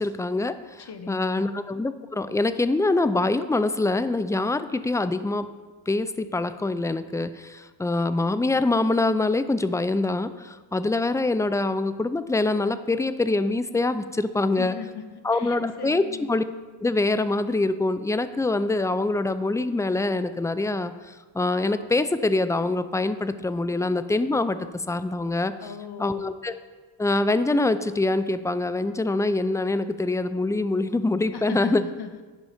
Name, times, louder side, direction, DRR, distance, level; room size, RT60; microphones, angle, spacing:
voice 1, 0.0-5.5 5.9-14.7 15.2-16.4 16.8-25.5 26.0-26.5 27.0-31.8, left 2 dB, 5° left, 12 dB, 0.4 m, -24 dB
voice 2, 0.8-1.4 14.6-16.3 25.6-26.3 31.3-32.2, left 6 dB, 55° left, 9 dB, 1.0 m, -38 dB
10.5 x 5.5 x 4.9 m, 1.3 s
cardioid pair, 65°, 48 cm